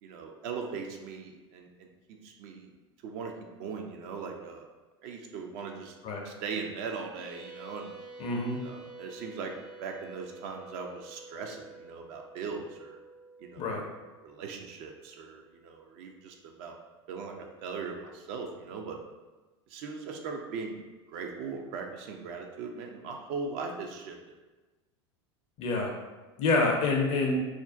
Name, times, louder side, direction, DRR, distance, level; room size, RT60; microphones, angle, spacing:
voice 1, 0.0-1.9 2.2-2.7 3.0-3.3 3.6-4.7 5.0-6.0 6.2-7.9 8.6-9.5 9.8-13.0 13.4-14.0 14.2-16.8 17.1-19.0 19.7-20.8 21.1-24.4, right 5 dB, 55° right, 2 dB, 0.4 m, -39 dB
sound 1, 7.1-15.8, right 2 dB, 80° right, 0.9 m, -50 dB
voice 2, 8.2-8.6 13.6-13.8 25.6-25.9 26.4-27.4, left 3 dB, 45° left, 0 dB, 0.5 m, -27 dB
2.4 x 2.1 x 2.4 m, 1.2 s
hypercardioid pair, 85°, 15 cm